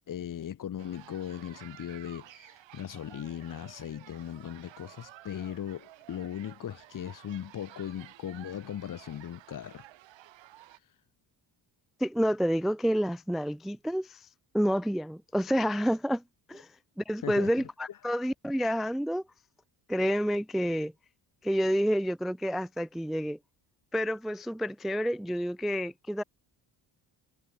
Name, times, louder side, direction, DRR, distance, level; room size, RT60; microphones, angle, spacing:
voice 1, 0.1-9.9 17.2-17.5, left 10 dB, 45° left, 1.4 m, -38 dB
sound 1, 0.8-10.8, right 15 dB, 85° right, 2.7 m, -53 dB
voice 2, 12.0-14.3 14.5-16.2 16.5-16.7 17.0-19.2 19.9-20.9 21.4-23.4 23.9-26.2, equal, ahead, 0.4 m, -29 dB
cardioid pair, 130°, 44 cm